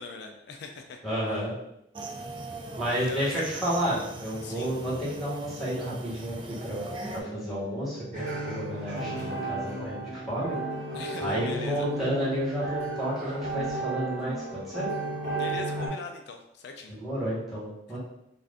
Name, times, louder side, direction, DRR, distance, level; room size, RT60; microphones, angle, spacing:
voice 1, 0.0-1.0 1.3-1.4 2.8-3.4 4.4-4.7 10.9-11.9 15.4-16.9, left 4 dB, 70° left, 4 dB, 0.3 m, -41 dB
voice 2, 1.0-1.5 2.8-10.6 11.2-14.9 16.9-18.0, equal, ahead, -10 dB, 1.2 m, -31 dB
sound 1, 1.9-7.2, right 2 dB, 30° right, 0.3 m, -40 dB
sound 2, 6.9-15.6, left 1 dB, 55° left, 0.8 m, -45 dB
sound 3, 8.1-15.9, right 2 dB, 50° right, 0.9 m, -34 dB
2.5 x 2.4 x 3.4 m, 0.81 s
head